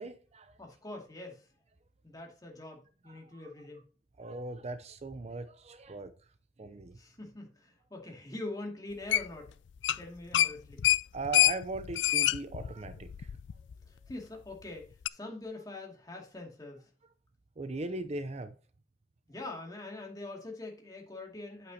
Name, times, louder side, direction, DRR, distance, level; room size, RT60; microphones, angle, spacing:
voice 1, 0.0-0.5 4.2-6.1 6.6-7.0 11.1-13.1 17.6-18.5, right 3 dB, 35° right, 0.6 m, -39 dB
voice 2, 0.6-1.5 2.0-3.9 7.0-9.5 10.0-10.8 13.9-16.8 19.3-21.7, left 2 dB, 20° left, 2.3 m, -44 dB
sound 1, 9.1-9.5 9.8-10.0 10.3-13.7 14.1-14.2 15.1-15.2, left 13 dB, 90° left, 0.4 m, -27 dB
8.9 x 8.2 x 2.8 m
head